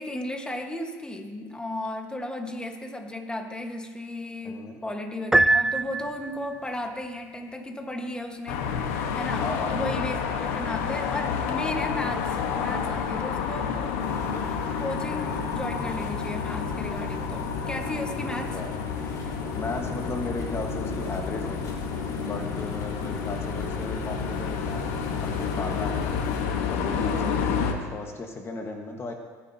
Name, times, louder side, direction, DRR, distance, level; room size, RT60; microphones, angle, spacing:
voice 1, 0.0-8.7 9.2-13.9 14.8-18.6, left 1 dB, 10° left, 4 dB, 1.4 m, -34 dB
voice 2, 4.4-4.8 9.4-9.7 18.5-18.8 19.6-21.7 22.2-26.1 26.7-29.1, left 3 dB, 30° left, 3 dB, 1.4 m, -35 dB
Piano, 5.3-6.6, right 2 dB, 5° right, 0.3 m, -22 dB
sound 1, 8.5-27.7, left 7 dB, 85° left, 1.2 m, -30 dB
sound 2, 14.0-26.4, left 2 dB, 45° left, 3.6 m, -37 dB
19.5 x 9.9 x 2.8 m, 1.4 s
supercardioid pair, 100°, 8 cm